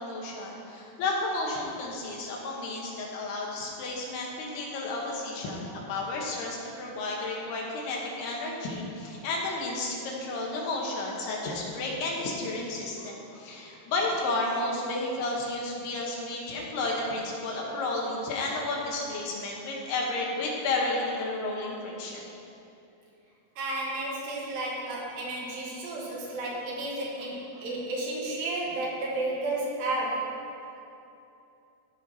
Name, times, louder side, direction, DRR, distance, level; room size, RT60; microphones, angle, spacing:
voice 1, 0.0-22.3 27.5-27.6, left 2 dB, 75° left, -2 dB, 3.2 m, -32 dB
voice 2, 23.6-30.3, right 2 dB, 85° right, -4 dB, 3.7 m, -32 dB
14.0 x 5.9 x 4.1 m, 2.7 s
omnidirectional pair, 4.7 m